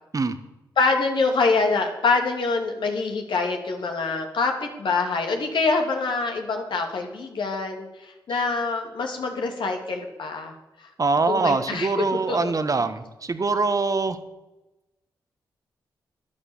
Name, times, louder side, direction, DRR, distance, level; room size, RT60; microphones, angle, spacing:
voice 1, 0.8-10.5 10.8-10.9 11.3-11.9 12.3-12.5, left 4 dB, 70° left, 3 dB, 2.8 m, -25 dB
voice 2, 11.0-14.2, right 3 dB, 45° right, 10 dB, 1.5 m, -23 dB
12.0 x 10.5 x 7.4 m, 0.99 s
cardioid pair, 50°, 8 cm